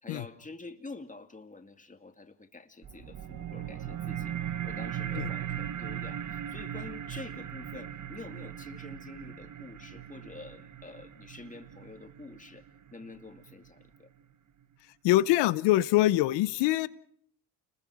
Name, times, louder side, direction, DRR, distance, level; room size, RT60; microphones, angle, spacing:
voice 1, 0.0-4.4 4.6-12.6 12.9-14.1, left 3 dB, 20° left, 6 dB, 2.3 m, -47 dB
sound 1, 2.8-13.8, right 10 dB, 45° right, 1.1 m, -39 dB
voice 2, 15.0-16.9, left 16 dB, 85° left, 17 dB, 0.9 m, -24 dB
29.5 x 21.0 x 4.9 m, 0.64 s
supercardioid pair, 75°, 41 cm